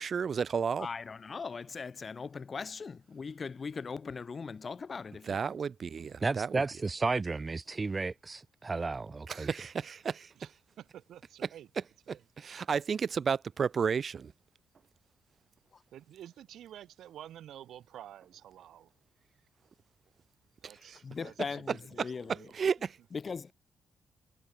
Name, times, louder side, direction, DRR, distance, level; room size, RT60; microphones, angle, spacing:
voice 1, 0.0-0.9 5.2-6.6 9.3-10.5 11.4-14.3 20.6-21.0 21.4-23.0, right 6 dB, 45° right, 0.4 m, -33 dB
voice 2, 0.8-5.4 15.7-15.8 21.0-22.3 23.1-23.5, left 5 dB, 35° left, 2.2 m, -39 dB
voice 3, 6.2-9.6, right 3 dB, 25° right, 2.0 m, -33 dB
voice 4, 10.8-11.7 12.1-12.2 15.9-18.9 20.6-22.6, right 11 dB, 80° right, 3.2 m, -50 dB
cardioid pair, 100°, 0 cm